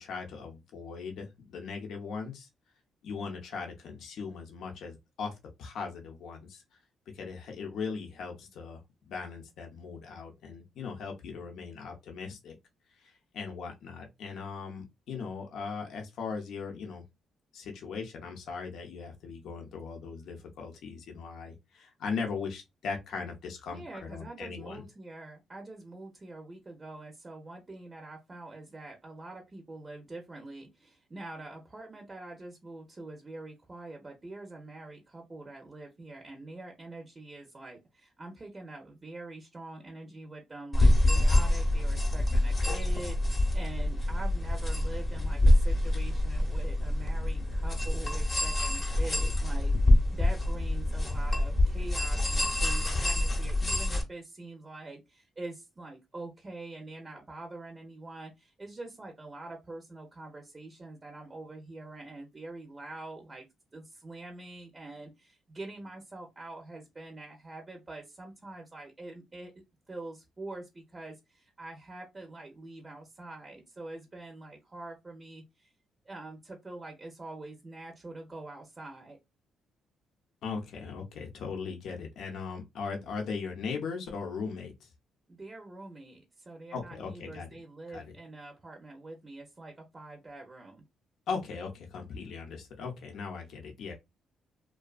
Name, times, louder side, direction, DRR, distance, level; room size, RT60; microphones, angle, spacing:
voice 1, 0.0-2.5 3.0-5.3 5.6-6.6 7.1-8.8 9.1-12.5 13.0-17.0 17.5-24.8 80.4-84.9 86.7-87.5 87.9-88.1 91.3-93.9, left 5 dB, 75° left, 0.6 m, -39 dB
voice 2, 23.7-63.5 63.7-69.5 69.9-75.7 76.0-79.2 85.3-90.8, right 2 dB, 25° right, 0.6 m, -45 dB
sound 1, 40.7-54.0, left 1 dB, 25° left, 0.8 m, -26 dB
2.4 x 2.3 x 2.3 m
cardioid pair, 90°, 0 cm